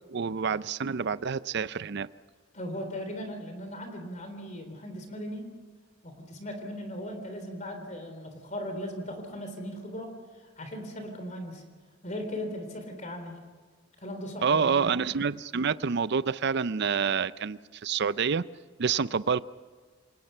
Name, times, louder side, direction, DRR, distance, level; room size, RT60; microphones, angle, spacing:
voice 1, 0.1-2.1 14.4-18.4 18.8-19.4, right 6 dB, 60° right, 16 dB, 0.5 m, -27 dB
voice 2, 2.5-5.5 6.0-10.1 10.6-11.6 12.0-13.4 14.0-14.8, equal, 40° left, 6 dB, 3.6 m, -38 dB
28.0 x 19.0 x 5.7 m, 1.5 s
head